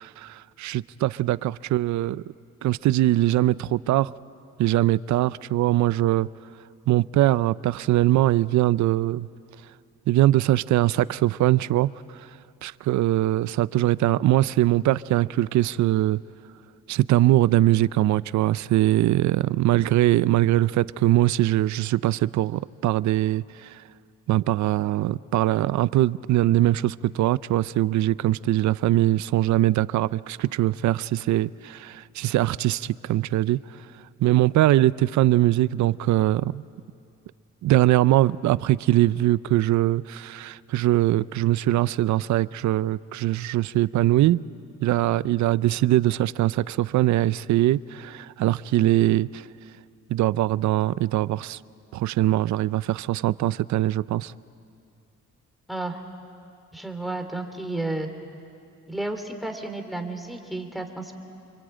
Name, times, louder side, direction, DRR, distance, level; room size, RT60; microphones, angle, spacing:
voice 1, 0.0-2.2 2.6-4.1 4.6-6.3 6.9-9.3 10.1-12.3 12.6-16.2 16.9-23.8 24.3-33.9 34.2-36.6 37.6-44.4 44.8-49.5 50.1-51.6 51.9-54.3, right 15 dB, 70° right, 0.6 m, -22 dB
voice 2, 55.7-56.0 56.7-58.1 58.9-61.1, right 2 dB, ahead, 3.2 m, -32 dB
27.5 x 24.0 x 8.9 m
cardioid pair, 90°, 30 cm